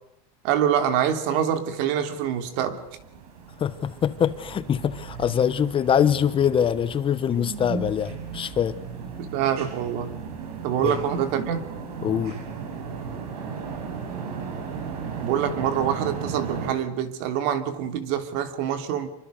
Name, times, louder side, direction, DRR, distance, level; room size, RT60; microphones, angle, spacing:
voice 1, 0.4-2.8 7.3-7.8 9.2-10.1 10.6-11.7 15.2-19.1, right 9 dB, 60° right, 3.2 m, -25 dB
sound 1, 2.2-16.7, right 6 dB, 85° right, 6.3 m, -36 dB
voice 2, 3.6-8.8 10.8-11.0 12.0-12.4, left 8 dB, 25° left, 1.1 m, -23 dB
26.5 x 24.0 x 6.6 m
supercardioid pair, 135°, 19 cm